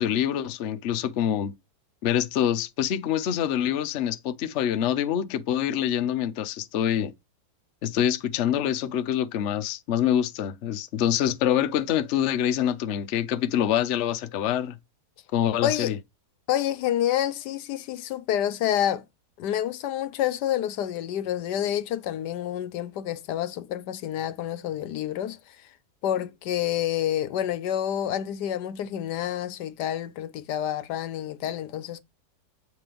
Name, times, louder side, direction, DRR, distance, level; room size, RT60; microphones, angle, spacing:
voice 1, 0.0-1.5 2.0-7.1 7.8-14.8 15.3-16.0, left 10 dB, 55° left, 0.8 m, -25 dB
voice 2, 15.6-15.9 16.5-19.1 19.4-25.7 26.0-32.0, left 11 dB, 85° left, 1.3 m, -28 dB
7.7 x 3.3 x 5.0 m
omnidirectional pair, 1.8 m